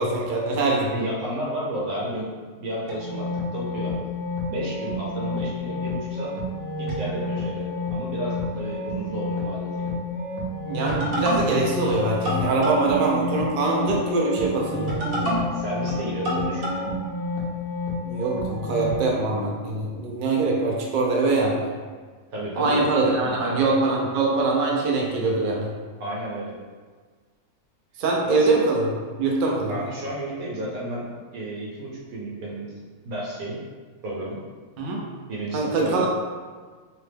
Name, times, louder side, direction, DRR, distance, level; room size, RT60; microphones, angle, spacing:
voice 1, 0.0-0.9 10.7-15.3 18.0-21.6 22.6-25.7 28.0-28.9 29.2-29.8 34.8-35.0 35.5-36.1, right 3 dB, 90° right, -2 dB, 0.4 m, -23 dB
voice 2, 0.9-2.3 2.6-3.9 4.4-6.3 6.8-9.9 15.5-16.9 22.3-23.6 26.0-26.5 28.2-28.5 29.6-32.7 33.0-33.6 34.0-34.4 35.3-36.1, right 1 dB, 70° right, -6 dB, 1.3 m, -32 dB
sound 1, 2.9-19.0, left 1 dB, 50° right, 0.7 m, -29 dB
2.9 x 2.1 x 3.3 m, 1.5 s
omnidirectional pair, 1.6 m